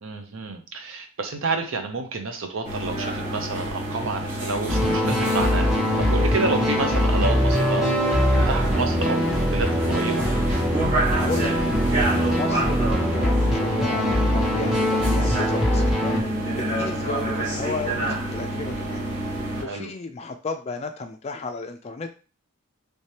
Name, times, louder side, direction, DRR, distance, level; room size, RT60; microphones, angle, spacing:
voice 1, 0.0-8.1 8.3-10.3 19.6-19.9, right 3 dB, 70° right, 6 dB, 0.6 m, -29 dB
sound 1, 2.6-19.6, right 1 dB, 35° right, 1.4 m, -28 dB
sound 2, 4.7-16.2, equal, 5° right, 0.9 m, -22 dB
voice 2, 11.2-11.5 12.1-16.2 16.5-19.0 19.6-22.1, left 3 dB, 30° left, 7 dB, 0.3 m, -33 dB
3.3 x 3.2 x 2.8 m, 0.35 s
head